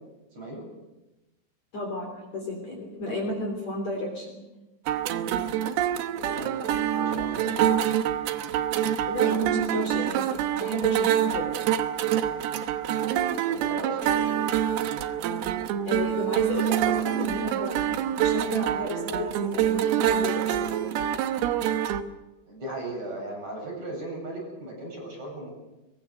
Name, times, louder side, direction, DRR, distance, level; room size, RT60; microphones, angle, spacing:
voice 1, 0.3-0.7 6.2-7.9 13.4-14.5 16.8-17.0 22.5-25.5, right 1 dB, 35° right, -1 dB, 9.2 m, -37 dB
voice 2, 1.7-4.4 9.1-10.3 10.5-11.5 15.8-20.8, left 2 dB, 40° left, 1 dB, 4.2 m, -33 dB
sound 1, 4.9-22.0, right 10 dB, 70° right, 2.6 m, -26 dB
23.0 x 22.0 x 6.7 m, 1.0 s
omnidirectional pair, 5.4 m